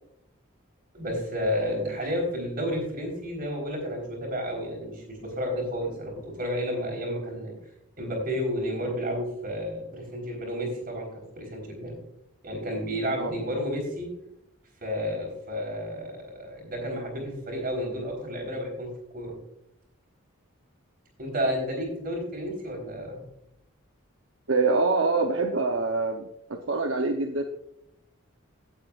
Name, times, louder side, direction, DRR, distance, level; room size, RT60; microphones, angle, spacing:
voice 1, 0.9-7.5 8.0-11.9 12.4-14.1 14.8-19.3 21.2-23.3, equal, 45° right, 1 dB, 4.0 m, -31 dB
voice 2, 24.5-27.4, right 3 dB, 65° right, 3 dB, 0.8 m, -25 dB
17.0 x 8.3 x 2.4 m, 0.79 s
head